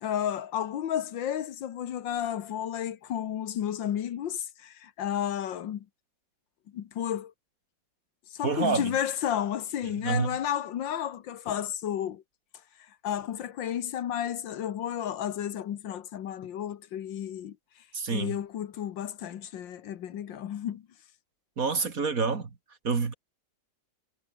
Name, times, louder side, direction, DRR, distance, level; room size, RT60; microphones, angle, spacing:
voice 1, 0.0-5.9 6.7-7.3 8.3-12.2 13.0-17.6 18.1-20.8, left 10 dB, 80° left, 1.9 m, -32 dB
voice 2, 8.4-8.9 10.0-10.4 17.9-18.4 21.6-22.5 22.8-23.1, right 5 dB, 50° right, 2.5 m, -27 dB
omnidirectional pair, 2.0 m